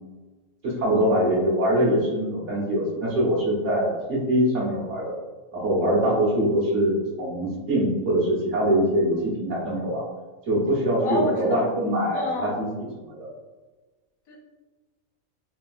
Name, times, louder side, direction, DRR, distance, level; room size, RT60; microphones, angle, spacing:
voice 1, 0.6-5.1 5.5-10.0 10.5-13.3, right 1 dB, 55° right, -6 dB, 1.4 m, -23 dB
voice 2, 11.0-11.6 12.1-12.5 14.3-14.4, left 1 dB, 85° left, 0 dB, 1.1 m, -27 dB
3.5 x 2.7 x 2.4 m, 1.2 s
omnidirectional pair, 1.5 m